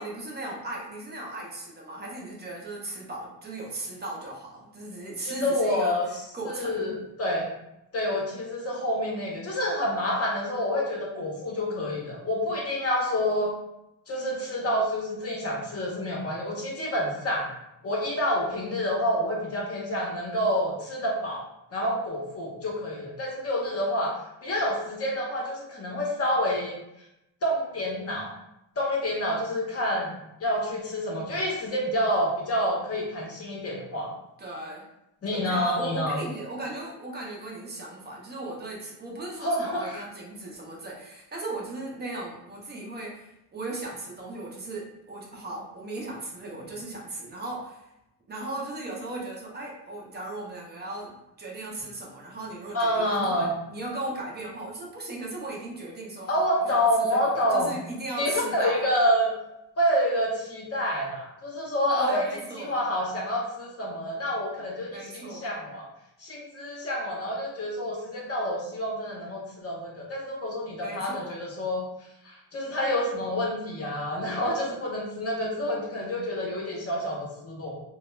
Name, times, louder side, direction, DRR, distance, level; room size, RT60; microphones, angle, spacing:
voice 1, 0.0-6.0 6.3-6.9 34.4-34.8 35.3-47.8 48.3-58.8 61.9-62.8 64.9-65.5 70.8-71.3, right 2 dB, 25° right, -2 dB, 0.4 m, -37 dB
voice 2, 5.2-7.5 7.9-13.5 14.1-17.5 17.8-21.4 21.7-24.1 24.4-26.7 27.4-28.3 28.8-30.1 30.4-34.1 35.2-36.2 39.4-40.0 52.7-53.5 56.3-57.8 58.2-59.3 59.8-62.3 62.5-65.9 66.2-71.8 72.2-77.8, equal, 35° left, -2 dB, 0.6 m, -28 dB
2.2 x 2.0 x 3.0 m, 0.86 s
wide cardioid pair, 170°, 42 cm